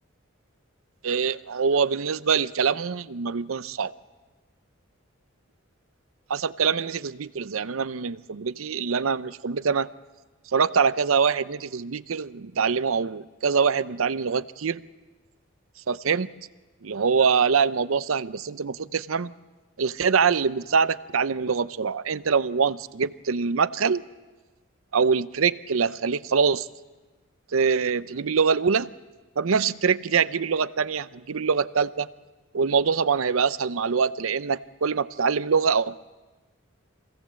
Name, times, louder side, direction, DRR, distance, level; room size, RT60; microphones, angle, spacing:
voice 1, 1.0-3.9 6.3-9.9 10.5-14.8 15.9-16.3 16.8-19.3 19.8-24.1 24.9-26.7 27.5-28.9 29.4-32.1 32.5-36.0, right 5 dB, 80° right, 16 dB, 0.6 m, -24 dB
26.0 x 17.0 x 7.5 m, 1.2 s
head